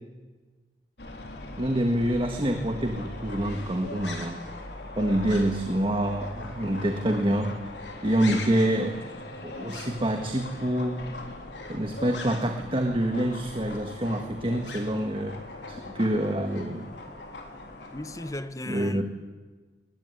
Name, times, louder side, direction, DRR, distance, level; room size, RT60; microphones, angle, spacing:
sound 1, 1.0-18.4, left 1 dB, 70° left, 3.5 m, -42 dB
voice 1, 1.6-4.4 5.0-7.5 8.0-9.0 9.4-11.0 11.7-15.4 15.7-16.9 18.7-19.0, right 1 dB, 30° right, 1.7 m, -26 dB
sound 2, 2.8-12.6 12.9-17.9, left 3 dB, 85° left, 3.5 m, -42 dB
voice 2, 17.9-19.0, left 1 dB, 20° left, 1.0 m, -35 dB
21.0 x 20.0 x 9.8 m
head